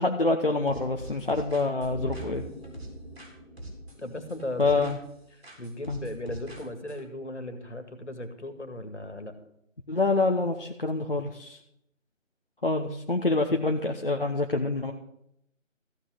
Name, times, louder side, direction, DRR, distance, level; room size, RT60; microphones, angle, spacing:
voice 1, 0.0-2.4 4.6-5.0 5.9-6.0 9.9-11.6 12.6-14.9, left 3 dB, 45° left, 2 dB, 1.0 m, -26 dB
sound 1, 0.7-3.3 3.6-5.2 5.4-7.0, equal, 50° right, 4.0 m, -44 dB
sound 2, 1.8-5.2 5.5-5.6, right 2 dB, 5° right, 2.0 m, -43 dB
voice 2, 4.0-4.9 5.3-9.3, left 1 dB, 60° left, 8 dB, 2.2 m, -37 dB
15.0 x 5.9 x 7.8 m, 0.76 s
figure-of-eight pair, 165°, 39 cm